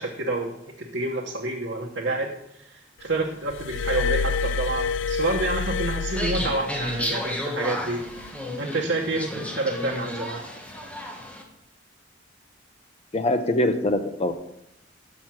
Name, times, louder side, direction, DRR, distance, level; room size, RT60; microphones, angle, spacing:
voice 1, 0.0-8.0 8.6-10.4, right 2 dB, 70° right, -3 dB, 1.0 m, -28 dB
Glass, 3.5-7.1 8.1-8.3, left 5 dB, 80° left, 0.3 m, -28 dB
sound 1, 6.1-11.4, left 1 dB, 10° left, 1.1 m, -32 dB
voice 2, 13.1-14.3, left 1 dB, 35° left, 8 dB, 0.7 m, -23 dB
6.5 x 6.2 x 5.8 m, 0.78 s
head